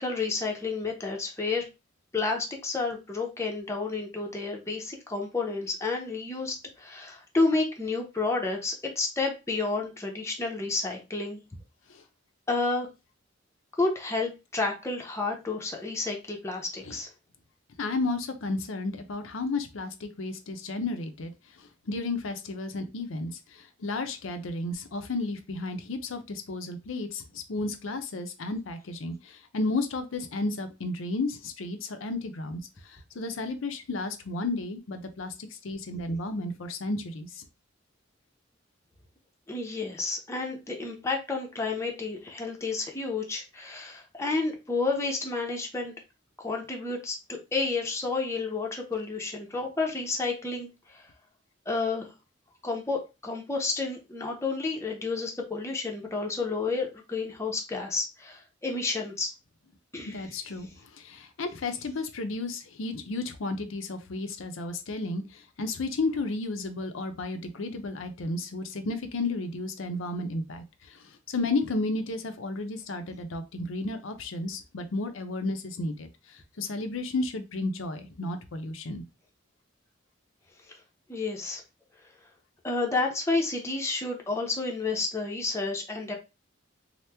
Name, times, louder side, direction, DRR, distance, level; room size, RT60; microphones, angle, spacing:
voice 1, 0.0-1.6 2.1-11.4 12.5-12.9 13.8-17.1 39.5-45.9 46.4-51.1 51.7-52.1 52.6-59.3 59.9-60.2 81.1-81.6 82.6-86.1, left 3 dB, 15° left, 0 dB, 0.6 m, -30 dB
voice 2, 17.8-21.3 21.6-37.5 60.1-60.7 61.0-71.0 71.3-79.0, left 2 dB, 90° left, 8 dB, 0.6 m, -33 dB
2.9 x 2.0 x 3.4 m, 0.27 s
head